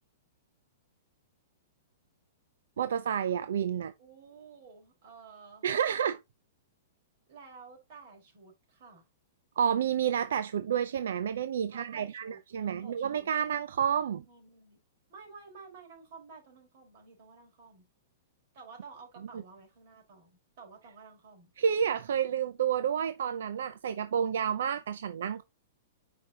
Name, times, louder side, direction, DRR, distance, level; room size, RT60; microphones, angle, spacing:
voice 1, 2.8-3.9 5.6-6.2 9.6-14.2 21.6-25.4, right 8 dB, 80° right, 0.5 m, -30 dB
voice 2, 4.0-5.7 7.3-9.1 11.7-13.3 14.0-14.8 15.1-17.9 18.5-21.5, right 5 dB, 45° right, 4.4 m, -52 dB
8.7 x 5.3 x 2.8 m
hypercardioid pair, 160°, 0 cm